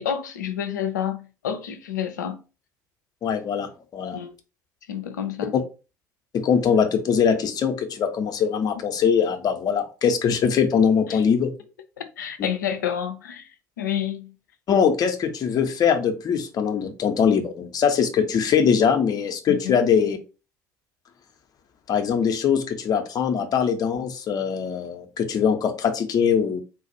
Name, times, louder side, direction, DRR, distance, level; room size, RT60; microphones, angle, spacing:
voice 1, 0.0-2.4 4.1-4.3 4.9-5.6 8.7-8.8 11.1-11.2 12.0-14.3 19.5-19.8, left 9 dB, 75° left, 0.4 m, -29 dB
voice 2, 3.2-4.2 6.3-11.5 14.7-20.2 21.9-26.6, left 7 dB, 40° left, 0.7 m, -22 dB
3.9 x 2.4 x 2.8 m
figure-of-eight pair, 60°, 10 cm